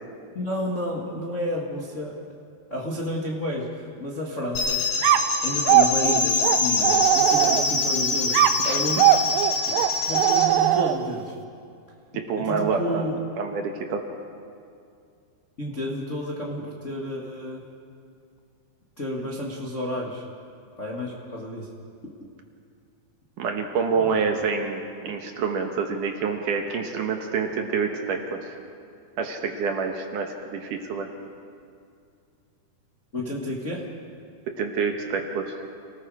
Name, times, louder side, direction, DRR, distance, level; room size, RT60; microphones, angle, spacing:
voice 1, 0.3-2.2 2.7-4.8 5.4-9.1 9.6-11.3 12.4-13.2 15.6-17.6 19.0-20.2 20.8-21.7 24.0-24.2 33.1-33.9, left 1 dB, 85° left, -3 dB, 0.6 m, -31 dB
sound 1, 4.6-10.5, left 4 dB, 60° left, 5.6 m, -25 dB
sound 2, 5.0-7.9 8.3-11.2, right 12 dB, 80° right, 2.7 m, -21 dB
voice 2, 12.1-13.1 13.4-14.0 23.4-28.5 29.2-31.1 34.6-35.5, right 5 dB, 65° right, 3 dB, 2.2 m, -27 dB
29.5 x 19.0 x 4.9 m, 2.4 s
omnidirectional pair, 5.0 m